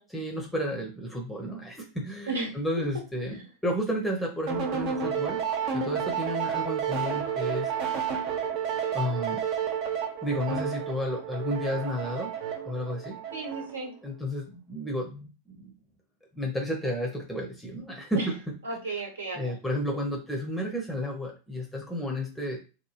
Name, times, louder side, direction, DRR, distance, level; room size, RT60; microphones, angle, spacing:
voice 1, 0.1-5.4 5.7-7.7 8.9-9.4 10.2-12.3 12.7-13.2 14.0-15.7 16.3-18.6 19.3-22.6, equal, 5° left, 0 dB, 0.7 m, -32 dB
voice 2, 2.3-2.8 13.3-13.9 18.1-18.3 18.6-19.5, right 3 dB, 70° right, 1 dB, 1.1 m, -34 dB
sound 1, 4.5-13.9, right 7 dB, 40° right, 0.7 m, -31 dB
3.5 x 2.2 x 3.0 m, 0.32 s
figure-of-eight pair, 90°, 0 cm